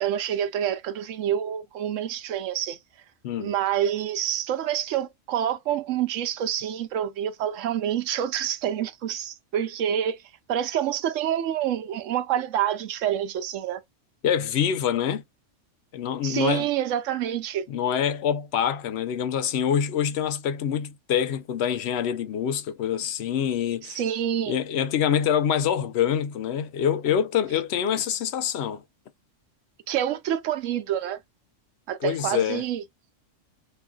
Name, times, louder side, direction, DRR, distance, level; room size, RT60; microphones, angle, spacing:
voice 1, 0.0-2.8 3.4-10.2 10.5-13.8 16.2-17.6 23.8-24.6 29.9-31.2 31.9-32.8, right 10 dB, 85° right, 1.0 m, -27 dB
voice 2, 14.2-15.2 15.9-16.7 17.7-24.0 24.5-28.8 32.0-32.6, left 8 dB, 65° left, 0.8 m, -25 dB
3.1 x 2.3 x 2.2 m
omnidirectional pair, 1.3 m